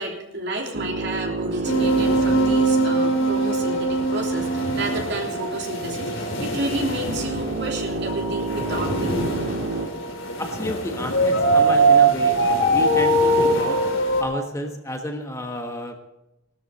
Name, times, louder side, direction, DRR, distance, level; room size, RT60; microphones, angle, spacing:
voice 1, 0.0-9.4, right 1 dB, 55° right, 0 dB, 3.3 m, -30 dB
sound 1, 0.7-4.1 7.1-9.9, right 3 dB, 80° right, 1.3 m, -30 dB
sound 2, 1.6-14.2, right 2 dB, 65° left, 3.2 m, -22 dB
voice 2, 10.4-13.8 14.2-16.0, equal, 15° left, 3 dB, 1.3 m, -31 dB
17.5 x 13.0 x 4.2 m, 0.93 s
head